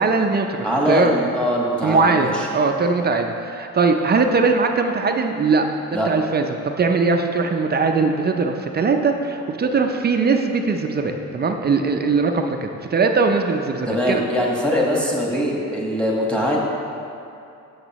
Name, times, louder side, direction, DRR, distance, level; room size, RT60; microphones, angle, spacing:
voice 1, 0.0-1.1 1.8-5.7 6.1-14.2, right 4 dB, 35° right, 4 dB, 0.5 m, -20 dB
voice 2, 0.6-2.5 5.9-6.1 13.9-16.6, equal, 5° left, -3 dB, 1.4 m, -22 dB
8.0 x 6.5 x 3.0 m, 2.7 s
cardioid pair, 90°, 30 cm